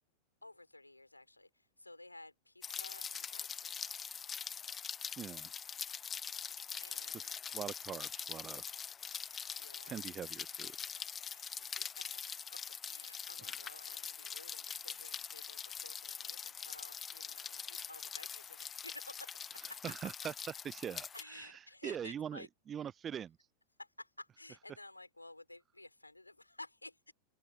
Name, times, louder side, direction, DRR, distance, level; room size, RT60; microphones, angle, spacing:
voice 1, 0.4-3.9 6.8-7.3 9.6-10.0 11.3-12.1 12.5-19.9 21.1-22.5 23.8-27.1, left 2 dB, 85° left, 5.4 m, -54 dB
Rain, 2.6-21.2, left 7 dB, 20° left, 0.4 m, -43 dB
voice 2, 5.2-5.6 7.1-8.6 9.9-10.8 19.8-20.3 20.6-23.4, right 8 dB, 25° right, 0.6 m, -43 dB
open air
figure-of-eight pair, 90°, 0 cm